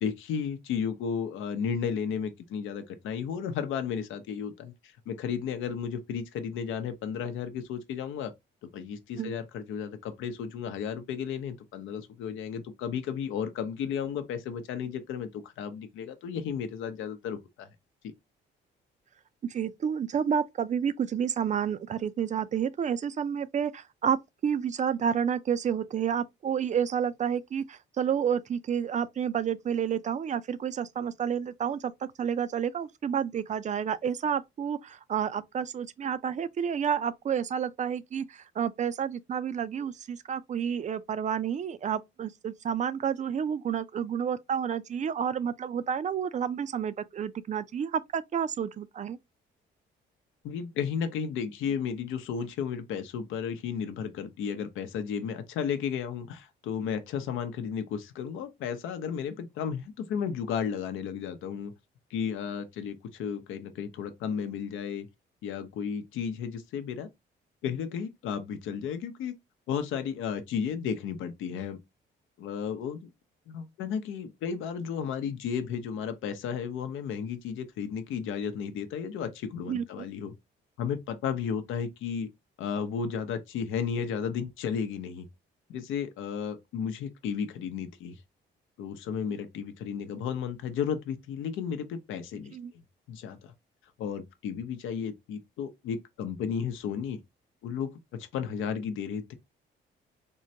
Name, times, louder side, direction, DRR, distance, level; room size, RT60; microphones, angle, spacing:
voice 1, 0.0-8.3 8.6-17.7 18.0-18.1 50.4-61.7 62.1-65.1 65.4-67.1 67.6-69.3 69.7-71.8 72.4-73.1 73.5-80.3 80.8-82.3 82.6-85.3 85.7-88.2 88.8-92.6 93.1-93.5 94.0-97.2 97.6-99.3, left 7 dB, 90° left, 0.7 m, -33 dB
voice 2, 19.4-49.2 79.7-80.1 92.5-92.7, right 8 dB, 40° right, 0.4 m, -30 dB
3.7 x 2.1 x 2.7 m
cardioid pair, 90°, 20 cm